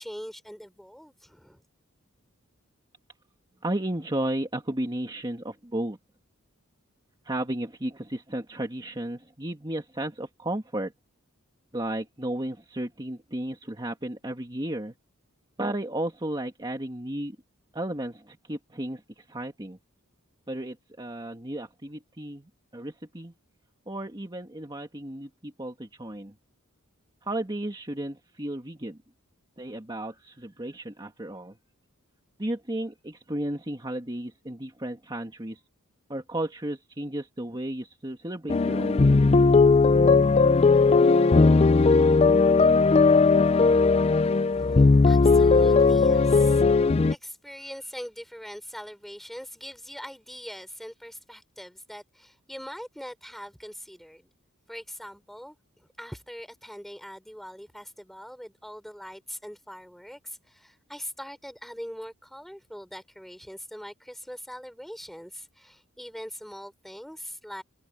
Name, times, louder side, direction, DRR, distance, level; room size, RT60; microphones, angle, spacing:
voice 1, 0.0-1.6 44.6-54.3 54.7-67.6, equal, ahead, 4.0 m, -42 dB
voice 2, 3.6-6.0 7.2-10.9 11.7-14.9 15.6-17.4 17.7-19.8 20.5-23.3 23.9-26.3 27.2-29.0 29.6-31.6 32.4-35.6 36.1-39.1, right 1 dB, 20° right, 1.9 m, -33 dB
sound 1, 38.5-47.1, left 4 dB, 30° left, 0.4 m, -18 dB
head